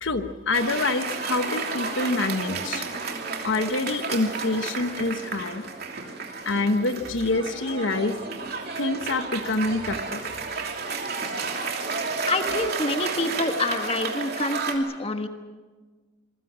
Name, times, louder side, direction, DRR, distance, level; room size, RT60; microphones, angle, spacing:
voice 1, 0.0-2.9 3.4-5.6 6.4-8.2 8.8-10.2, left 2 dB, 70° left, 8 dB, 1.2 m, -26 dB
Cheering / Applause, 0.5-14.7, right 4 dB, 50° right, 2.9 m, -32 dB
voice 2, 12.3-15.3, left 2 dB, 30° left, 6 dB, 1.4 m, -26 dB
26.5 x 23.0 x 6.3 m, 1.4 s
head